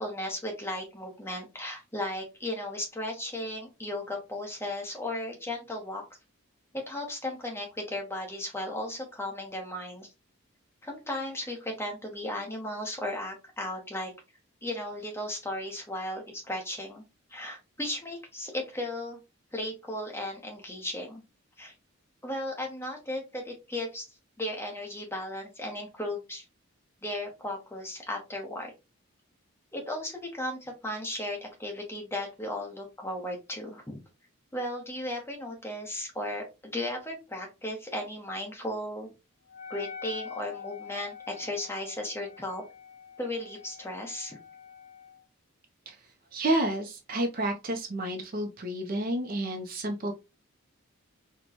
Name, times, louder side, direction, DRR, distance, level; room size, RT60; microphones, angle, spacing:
voice 1, 0.0-6.0 6.7-10.1 10.8-14.1 14.6-17.0 17.3-19.2 19.5-21.2 21.6-21.7 22.2-24.1 24.4-26.4 27.0-28.7 29.7-34.0 34.5-39.1 39.7-42.6 43.2-44.4, left 1 dB, 10° left, 1 dB, 0.9 m, -35 dB
Wind instrument woodwind instrument, 39.5-45.2, left 6 dB, 90° left, 0.7 m, -45 dB
voice 2, 46.3-50.1, right 1 dB, 40° right, 4 dB, 0.5 m, -30 dB
4.3 x 2.2 x 2.8 m, 0.26 s
head